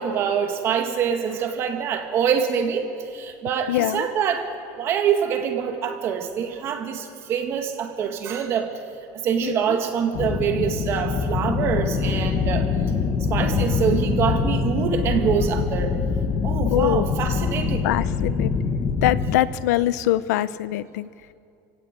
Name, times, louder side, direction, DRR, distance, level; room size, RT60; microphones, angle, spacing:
voice 1, 0.0-8.7 9.2-12.7 13.3-16.0 16.4-17.9, right 7 dB, 30° right, 5 dB, 2.0 m, -25 dB
voice 2, 3.7-4.1 9.4-9.8 16.7-17.1 17.8-18.5 19.0-21.1, left 14 dB, 80° left, 17 dB, 0.8 m, -23 dB
sound 1, 10.1-19.4, left 5 dB, 25° left, 1.3 m, -24 dB
28.5 x 17.0 x 9.0 m, 2.6 s
supercardioid pair, 180°, 9 cm